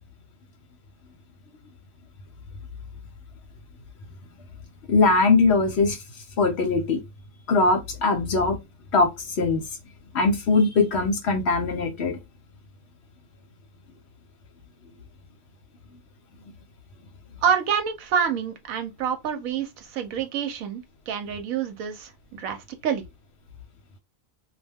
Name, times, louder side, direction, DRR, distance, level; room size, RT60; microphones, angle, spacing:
voice 1, 4.9-6.0 6.4-7.0 7.5-8.6 8.9-9.6 10.1-12.2, left 3 dB, 60° left, 0.8 m, -21 dB
voice 2, 17.4-23.0, right 7 dB, 85° right, 1.0 m, -27 dB
2.3 x 2.2 x 3.3 m
omnidirectional pair, 1.4 m